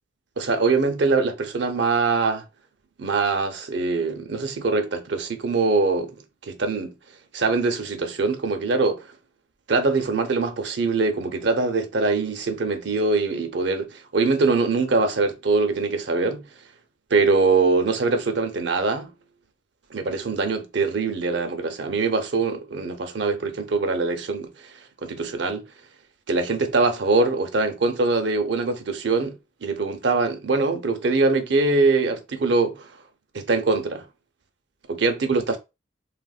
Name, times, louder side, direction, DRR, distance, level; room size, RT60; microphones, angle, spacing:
voice 1, 0.4-2.4 3.0-6.2 6.5-6.9 7.3-9.0 9.7-16.5 17.1-19.1 19.9-24.7 25.0-25.6 26.3-32.9 33.3-34.1 34.9-35.6, right 3 dB, 65° right, 0.6 m, -23 dB
3.4 x 2.4 x 2.4 m
head